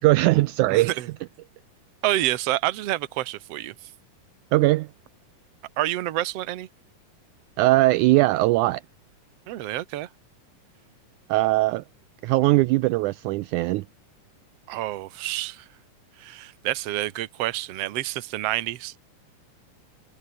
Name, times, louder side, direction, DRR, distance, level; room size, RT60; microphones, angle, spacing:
voice 1, 0.0-1.0 4.5-4.9 7.6-8.8 11.3-11.8 12.2-13.9, right 19 dB, 80° right, 1.9 m, -20 dB
voice 2, 0.7-1.1 2.0-3.7 5.8-6.7 9.5-10.1 14.7-15.7 16.2-18.9, right 15 dB, 60° right, 1.9 m, -28 dB
omnidirectional pair, 3.8 m